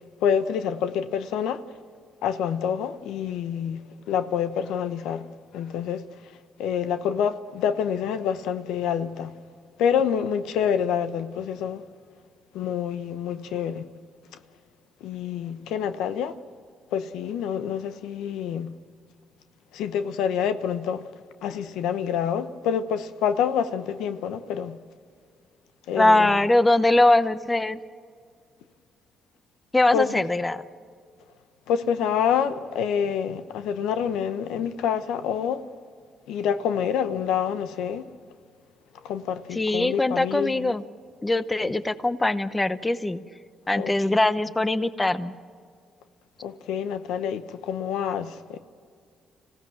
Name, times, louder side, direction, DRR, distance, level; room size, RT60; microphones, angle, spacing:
voice 1, 0.0-1.6 2.2-5.3 5.5-6.3 6.6-9.4 9.8-11.8 12.5-13.9 15.0-16.4 16.9-18.7 19.7-21.1 21.4-24.8 25.9-26.4 29.9-30.2 31.7-35.7 36.3-38.1 39.0-40.8 41.6-41.7 43.8-43.9 46.4-48.6, left 8 dB, 90° left, 0.9 m, -27 dB
voice 2, 26.0-27.8 29.7-30.6 39.5-40.8 41.2-43.2 43.7-45.3, left 2 dB, 15° left, 0.8 m, -22 dB
26.0 x 16.5 x 7.6 m
cardioid pair, 90°, 0 cm